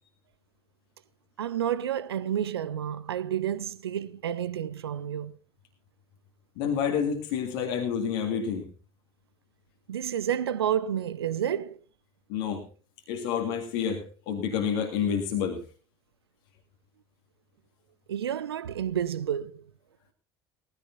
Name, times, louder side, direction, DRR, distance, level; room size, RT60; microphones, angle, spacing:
voice 1, 1.4-5.4 9.9-11.8 18.1-19.6, right 9 dB, 75° right, 0.7 m, -30 dB
voice 2, 6.6-8.7 12.3-12.6 13.1-15.6, left 7 dB, 60° left, 2.0 m, -29 dB
19.0 x 15.0 x 2.7 m
figure-of-eight pair, 65°, 13 cm